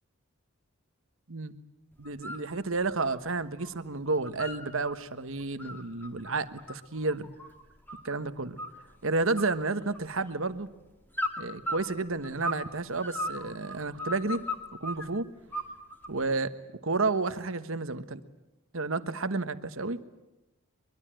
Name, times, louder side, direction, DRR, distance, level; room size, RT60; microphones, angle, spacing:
sound 1, 2.0-2.5 2.8-3.7 4.0-4.9 5.4-8.1 8.6-9.0 9.3-10.3 11.1-12.7 13.0-15.0 15.5-16.2, left 1 dB, 10° left, 2.3 m, -37 dB
voice 1, 2.0-7.3 8.0-8.6 9.0-10.7 11.4-14.4 14.8-15.3 16.1-16.6 16.8-18.2 18.7-20.0, right 3 dB, 65° right, 12 dB, 1.3 m, -31 dB
23.5 x 23.0 x 9.0 m, 0.97 s
head